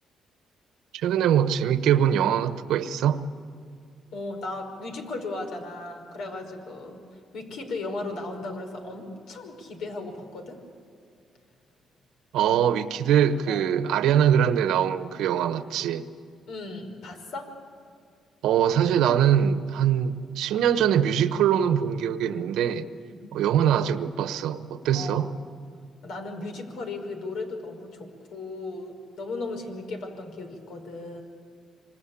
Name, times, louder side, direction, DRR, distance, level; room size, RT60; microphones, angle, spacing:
voice 1, 0.9-3.2 12.3-16.1 18.4-22.9 23.3-25.3, right 9 dB, 85° right, 1.2 m, -23 dB
voice 2, 4.1-7.0 7.3-10.6 12.4-12.5 13.5-13.7 16.5-17.5 23.1-23.2 24.9-25.5 26.0-31.2, left 2 dB, 80° left, 5.3 m, -36 dB
27.0 x 25.5 x 8.7 m
cardioid pair, 90°, 0 cm